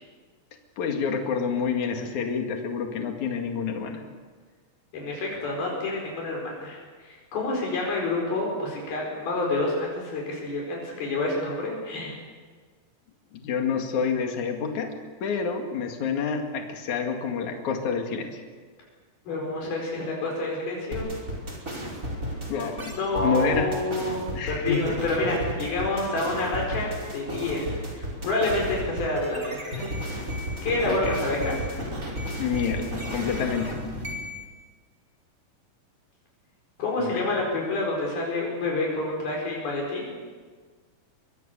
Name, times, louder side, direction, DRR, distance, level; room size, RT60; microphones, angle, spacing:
voice 1, 0.8-4.0 13.3-15.0 15.2-18.4 22.5-23.7 24.3-25.0 30.8-31.2 32.4-33.9 37.0-37.2, left 6 dB, 55° left, 3 dB, 3.4 m, -28 dB
voice 2, 4.9-12.1 19.3-21.1 22.9-24.2 24.5-29.8 30.6-31.7 36.8-40.2, left 2 dB, 80° left, -2 dB, 6.7 m, -28 dB
sound 1, 20.9-34.4, equal, 20° right, 5.3 m, -33 dB
24.0 x 23.5 x 6.8 m, 1.5 s
omnidirectional pair, 4.3 m